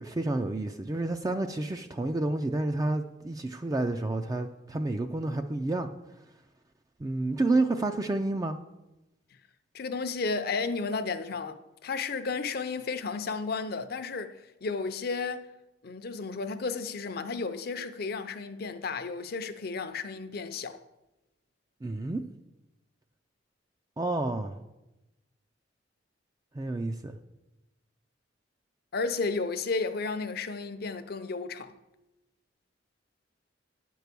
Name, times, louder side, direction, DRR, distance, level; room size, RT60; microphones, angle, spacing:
voice 1, 0.0-5.9 7.0-8.6 21.8-22.2 24.0-24.6 26.5-27.2, right 2 dB, 20° right, 0.3 m, -29 dB
voice 2, 9.7-15.5 15.8-20.8 28.9-31.7, left 4 dB, 55° left, 0.6 m, -33 dB
9.9 x 4.7 x 6.8 m
head